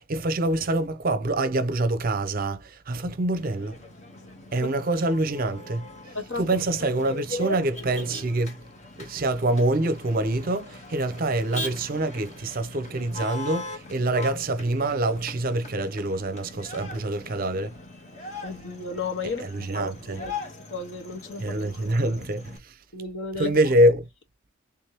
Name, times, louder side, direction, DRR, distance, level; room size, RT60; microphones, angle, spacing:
voice 1, 0.0-3.8 4.5-5.9 6.4-8.6 9.0-17.8 19.4-20.2 21.4-22.8 23.4-24.1, right 1 dB, 45° right, 0.6 m, -25 dB
Motor vehicle (road), 3.4-22.6, left 2 dB, 35° left, 1.1 m, -41 dB
voice 2, 7.1-7.6 18.4-20.3 20.7-21.6 22.9-23.5, left 3 dB, 60° left, 1.3 m, -33 dB
3.4 x 3.4 x 2.8 m
head